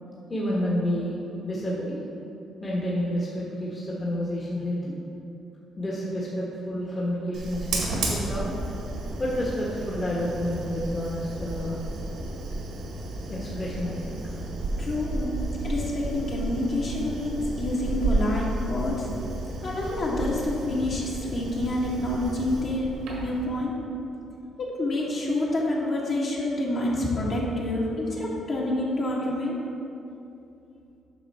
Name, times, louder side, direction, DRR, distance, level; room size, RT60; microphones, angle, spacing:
voice 1, 0.3-1.1 1.4-2.0 2.6-4.9 5.8-8.5 9.2-11.8 13.3-14.4, equal, 30° left, -6 dB, 1.5 m, -29 dB
Fire, 7.3-23.5, right 2 dB, 85° right, 1.7 m, -32 dB
voice 2, 14.7-15.3 15.6-19.1 19.6-22.9 23.2-23.7 24.6-29.6, left 1 dB, 50° left, -5 dB, 2.0 m, -28 dB
8.9 x 5.8 x 4.4 m, 2.7 s
cardioid pair, 90°, 0 cm